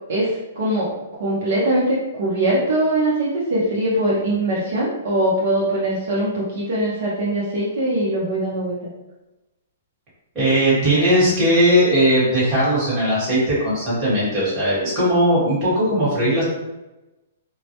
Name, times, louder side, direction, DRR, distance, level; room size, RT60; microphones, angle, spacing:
voice 1, 0.1-0.9 1.2-8.8, right 1 dB, 60° right, -6 dB, 0.7 m, -22 dB
voice 2, 10.3-16.4, equal, 20° right, -10 dB, 1.2 m, -18 dB
2.1 x 2.1 x 2.8 m, 1.0 s
hypercardioid pair, 170°, 0 cm